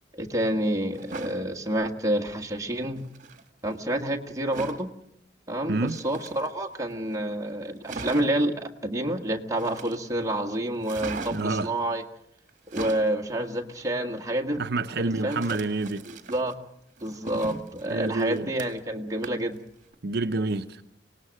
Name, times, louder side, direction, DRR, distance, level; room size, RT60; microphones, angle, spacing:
voice 1, 0.1-3.1 3.6-4.9 5.5-12.0 12.7-14.6 15.0-15.4 16.1-16.6 17.0-19.6, right 1 dB, 20° right, 1.6 m, -28 dB
sound 1, 0.9-1.4 3.0-3.4 4.5-4.9 5.8-6.7 7.2-7.3 7.5-7.6 7.8-8.5 9.6-10.2 10.8-11.6 12.5-13.1 15.3-16.5 17.0-18.9 19.2-19.6 19.9-20.0, right 3 dB, 45° right, 1.8 m, -39 dB
voice 2, 5.7-6.0 11.3-11.7 14.6-16.1 17.9-18.5 20.0-20.8, right 3 dB, 60° right, 0.7 m, -28 dB
25.5 x 19.0 x 6.4 m
head